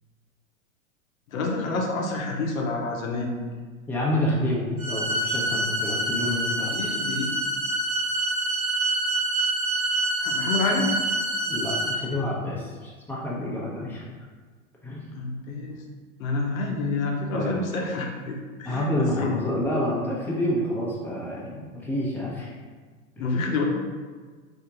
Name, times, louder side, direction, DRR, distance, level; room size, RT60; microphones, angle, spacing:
voice 1, 1.3-3.3 6.6-7.4 10.2-10.9 15.2-15.8 16.2-19.3 23.2-23.6, left 3 dB, 75° left, 0 dB, 0.8 m, -28 dB
voice 2, 3.9-6.7 11.5-14.0 14.8-15.0 17.3-17.5 18.6-22.5 23.2-23.3, left 1 dB, 5° left, -6 dB, 0.9 m, -28 dB
sound 1, 4.8-11.9, right 1 dB, 85° right, 1.1 m, -26 dB
4.3 x 2.9 x 2.4 m, 1.5 s
hypercardioid pair, 95°, 41 cm